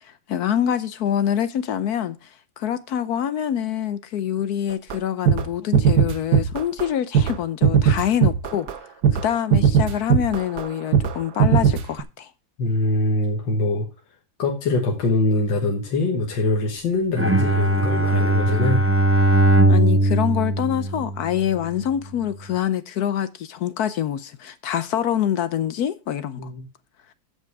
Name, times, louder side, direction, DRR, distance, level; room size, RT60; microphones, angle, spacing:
voice 1, 0.0-2.3 2.6-8.7 9.1-12.3 19.7-26.4, left 10 dB, 65° left, 1.1 m, -25 dB
sound 1, 4.9-5.0 5.3-5.5 5.7-6.8 7.1-7.4 7.6-8.8 9.0-9.3 9.5-10.7 10.9-11.1 11.4-12.0, right 8 dB, 65° right, 1.4 m, -18 dB
voice 2, 12.6-13.9 14.4-18.9 26.4-26.6, left 2 dB, 85° left, 2.1 m, -23 dB
Bowed string instrument, 17.2-21.6, right 1 dB, 20° right, 0.3 m, -19 dB
14.5 x 5.5 x 4.7 m
omnidirectional pair, 2.0 m